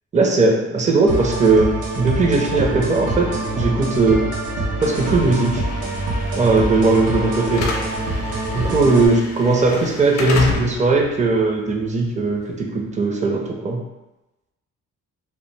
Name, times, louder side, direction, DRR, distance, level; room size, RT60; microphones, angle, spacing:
voice 1, 0.1-4.3 4.8-5.6 6.4-7.6 8.5-13.8, right 3 dB, 25° right, 1 dB, 0.5 m, -18 dB
sound 1, 1.1-9.1, right 1 dB, 85° right, 0.7 m, -25 dB
Slam / Alarm, 4.8-12.9, left 4 dB, 60° left, 0.6 m, -31 dB
2.3 x 2.1 x 3.1 m, 1.0 s
cardioid pair, 90°, 30 cm